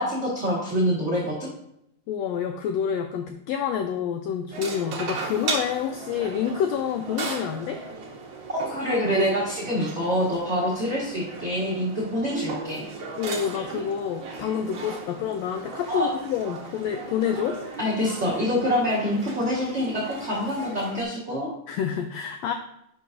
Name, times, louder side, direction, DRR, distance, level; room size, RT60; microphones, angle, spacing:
voice 1, 0.0-1.3 8.5-12.9 15.9-16.1 17.8-21.5, equal, 30° right, -6 dB, 1.2 m, -26 dB
voice 2, 2.1-7.8 13.2-17.6 21.7-22.5, left 8 dB, 80° left, 6 dB, 1.5 m, -28 dB
sound 1, 4.5-21.0, right 4 dB, 60° right, 1.3 m, -37 dB
11.5 x 5.4 x 2.6 m, 0.79 s
omnidirectional pair, 3.4 m